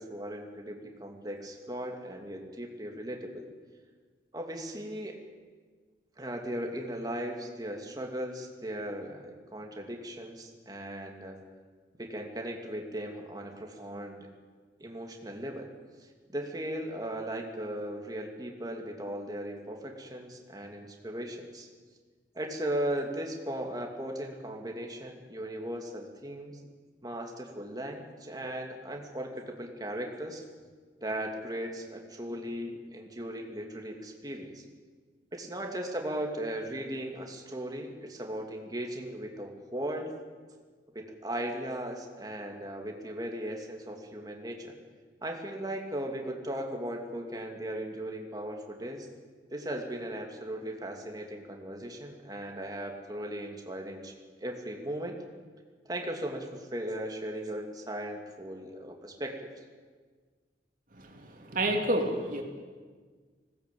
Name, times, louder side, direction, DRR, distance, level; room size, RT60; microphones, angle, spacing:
voice 1, 0.0-3.5 4.3-5.2 6.2-11.4 12.0-14.3 14.8-15.7 16.0-21.7 22.3-26.6 27.0-30.4 31.0-34.6 35.3-40.1 40.9-44.8 45.2-49.1 49.5-54.1 54.4-55.2 55.9-59.6, right 1 dB, 20° right, 2 dB, 2.6 m, -37 dB
voice 2, 60.9-62.4, right 1 dB, 50° right, 2 dB, 3.3 m, -30 dB
20.0 x 17.5 x 8.6 m, 1.5 s
head